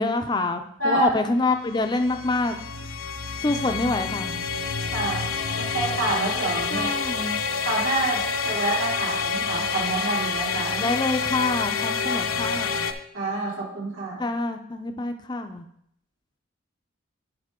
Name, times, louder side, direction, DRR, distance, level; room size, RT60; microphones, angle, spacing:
voice 1, 0.0-2.6 3.4-4.3 6.7-7.3 10.8-12.9 14.2-15.7, left 3 dB, 20° left, 6 dB, 0.4 m, -26 dB
voice 2, 0.8-1.1 3.4-3.6 4.9-6.9 7.6-10.9 13.1-14.3, right 2 dB, 75° right, -4 dB, 2.8 m, -28 dB
sound 1, 1.5-12.9, left 5 dB, 80° left, 0.6 m, -28 dB
10.0 x 4.9 x 3.7 m, 0.71 s
head